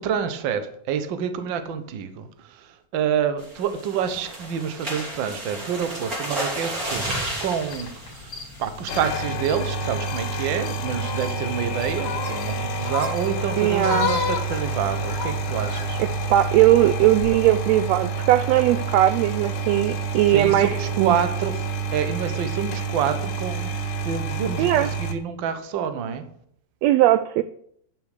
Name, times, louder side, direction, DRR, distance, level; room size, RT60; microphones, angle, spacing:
voice 1, 0.0-16.0 20.3-21.6 21.9-23.7 24.0-26.2, right 8 dB, 60° right, 9 dB, 1.2 m, -28 dB
sound 1, 3.4-9.2 9.6-9.8 10.2-10.3 10.6-10.9, right 1 dB, 30° right, 3.4 m, -33 dB
sound 2, 6.8-16.2, left 6 dB, 45° left, 1.7 m, -34 dB
sound 3, 7.0-8.1 8.8-25.1, right 3 dB, 85° left, 2.8 m, -28 dB
voice 2, 13.6-14.1 16.0-21.2 24.6-24.9 26.8-27.4, right 13 dB, 80° right, 12 dB, 1.5 m, -19 dB
9.6 x 7.3 x 6.6 m, 0.67 s
omnidirectional pair, 3.4 m